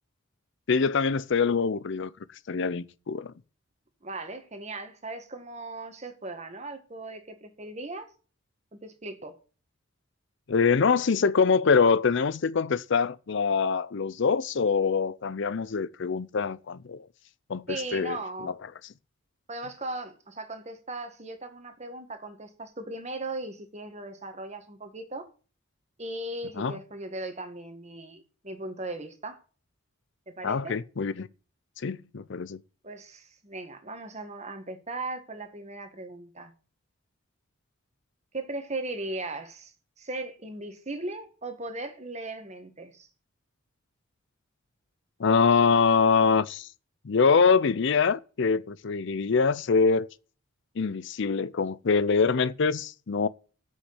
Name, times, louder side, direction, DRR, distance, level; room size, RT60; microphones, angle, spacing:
voice 1, 0.7-2.1 2.5-3.3 10.5-17.0 17.5-17.6 17.9-18.2 18.4-18.5 26.6-26.8 30.4-31.3 31.8-32.6 45.2-46.7 47.0-50.1 50.8-53.3, left 5 dB, 60° left, 0.5 m, -24 dB
voice 2, 4.0-8.1 8.7-9.4 17.7-18.6 19.5-25.3 26.0-29.4 30.3-30.8 32.8-36.5 38.3-43.1, right 2 dB, 35° right, 1.8 m, -38 dB
8.3 x 6.4 x 8.0 m
head